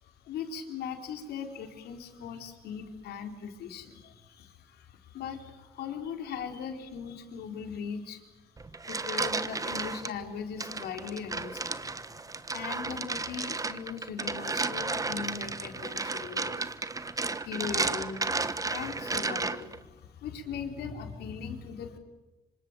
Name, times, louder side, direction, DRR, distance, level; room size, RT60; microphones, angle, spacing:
voice 1, 0.0-8.5 8.9-22.0, left 6 dB, 85° left, 5 dB, 4.2 m, -40 dB
sound 1, 8.6-10.1 10.6-19.8, right 3 dB, 20° right, 1.4 m, -33 dB
26.5 x 26.0 x 7.7 m, 1.1 s
cardioid pair, 90°, 16 cm